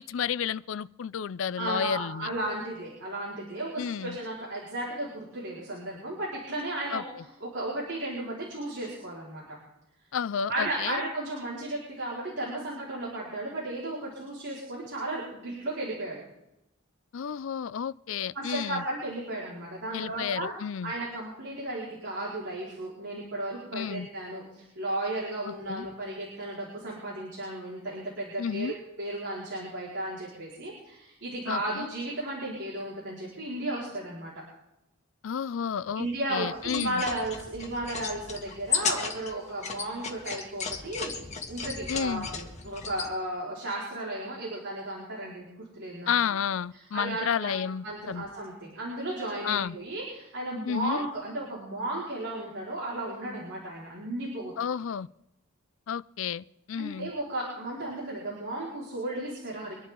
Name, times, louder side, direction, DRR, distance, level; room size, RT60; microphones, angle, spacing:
voice 1, 0.0-2.3 3.8-4.2 6.9-7.2 10.1-11.0 17.1-18.8 19.9-20.9 23.7-24.1 25.5-25.9 28.4-28.8 31.5-31.9 35.2-37.0 41.9-42.3 46.1-48.3 49.4-49.8 50.6-51.0 54.6-55.1 55.9-57.1, left 7 dB, 70° left, 0.4 m, -31 dB
voice 2, 1.6-7.0 7.4-9.4 10.5-16.2 18.3-20.5 20.8-34.3 35.9-41.1 41.5-46.1 46.9-54.5 56.8-59.7, right 1 dB, 60° right, 4.6 m, -34 dB
sound 1, 36.6-43.1, left 6 dB, 35° left, 1.8 m, -35 dB
25.0 x 11.0 x 3.8 m
head